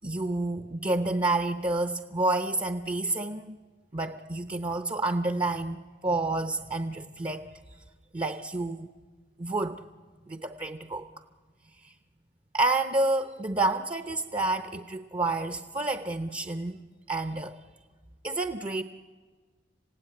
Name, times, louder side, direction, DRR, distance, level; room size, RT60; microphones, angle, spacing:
voice 1, 0.0-3.6 3.9-7.5 8.1-8.9 9.4-9.8 10.3-11.1 11.8-11.9 12.5-16.8 17.1-17.6 18.2-18.8, right 2 dB, 25° right, 9 dB, 0.8 m, -29 dB
27.0 x 16.5 x 9.9 m, 1.5 s
head